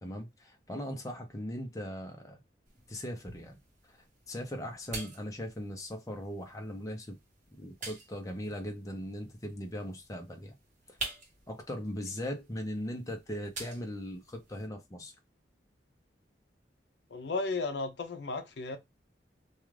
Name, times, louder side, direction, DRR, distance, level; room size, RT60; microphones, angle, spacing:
voice 1, 0.0-2.4 2.9-3.6 3.9-4.0 4.3-7.2 7.5-10.6 10.9-11.0 11.5-15.1, equal, 20° left, 0.6 m, -39 dB
sound 1, 2.6-14.7, right 3 dB, 40° right, 1.0 m, -48 dB
voice 2, 17.1-18.8, left 3 dB, 70° left, 0.5 m, -34 dB
2.4 x 2.3 x 3.1 m
head